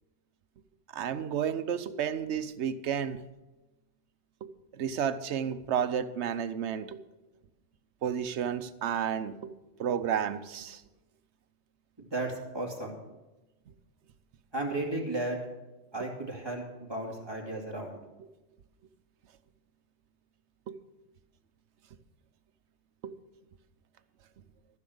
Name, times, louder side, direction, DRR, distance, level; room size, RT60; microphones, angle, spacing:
voice 1, 0.9-3.2 4.4-4.5 4.8-7.0 8.0-9.5 9.8-10.8 20.7-20.8 23.0-23.1, right 8 dB, 70° right, 11 dB, 1.0 m, -31 dB
voice 2, 12.0-13.0 14.5-15.4 15.9-18.0, right 2 dB, 20° right, -1 dB, 2.4 m, -34 dB
14.0 x 6.5 x 7.9 m, 1.1 s
omnidirectional pair, 1.2 m